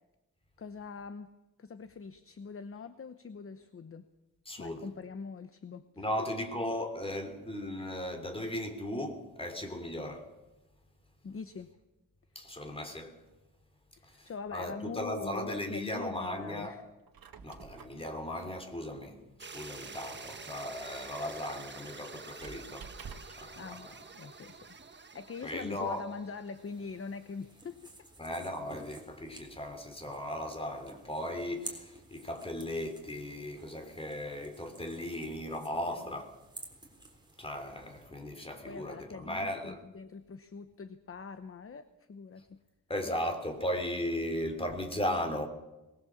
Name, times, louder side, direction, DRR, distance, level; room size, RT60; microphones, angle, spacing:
voice 1, 0.6-1.3 1.6-4.1 4.6-6.1 11.2-11.7 14.0-16.8 23.6-23.9 24.1-27.9 36.1-36.2 38.7-42.6, left 5 dB, 40° left, 0.9 m, -43 dB
voice 2, 4.5-4.9 6.0-10.3 12.3-13.2 14.0-16.7 17.4-22.9 23.4-23.9 25.4-26.0 28.2-36.3 37.4-39.8 42.9-45.5, left 1 dB, 15° left, 3.0 m, -37 dB
Squeak, 16.9-23.5, right 5 dB, 70° right, 1.6 m, -52 dB
sound 1, 19.4-27.4, right 4 dB, 30° right, 1.2 m, -49 dB
sound 2, 26.5-38.1, right 2 dB, 10° right, 3.9 m, -52 dB
22.5 x 19.5 x 7.3 m
wide cardioid pair, 160°, 36 cm